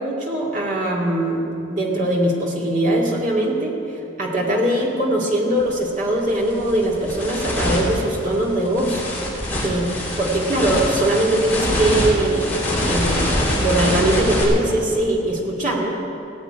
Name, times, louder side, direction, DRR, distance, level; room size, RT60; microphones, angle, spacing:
voice 1, 0.0-3.8 4.2-9.0 9.6-9.8 10.2-15.9, right 1 dB, 40° right, -2 dB, 2.4 m, -21 dB
sound 1, 5.6-5.7 6.2-14.4, left 1 dB, 10° left, 3.1 m, -24 dB
17.5 x 8.1 x 8.8 m, 2.7 s
head